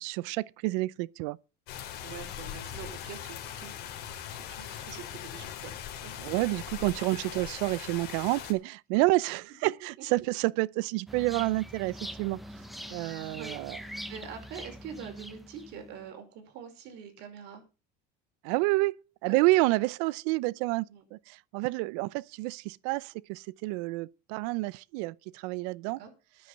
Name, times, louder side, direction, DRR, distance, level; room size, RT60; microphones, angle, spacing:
voice 1, 0.0-1.4 6.2-12.4 12.9-13.8 18.4-19.0 19.2-26.0, right 21 dB, 85° right, 0.6 m, -29 dB
sound 1, 1.7-8.5, left 10 dB, 55° left, 3.5 m, -40 dB
voice 2, 2.0-3.7 4.3-6.1 9.6-9.7 12.8-17.6 19.2-19.4 20.9-21.0 25.8-26.1, right 7 dB, 60° right, 4.9 m, -45 dB
sound 2, 11.1-16.1, equal, ahead, 1.0 m, -43 dB
9.9 x 7.8 x 7.8 m
cardioid pair, 155°, 20 cm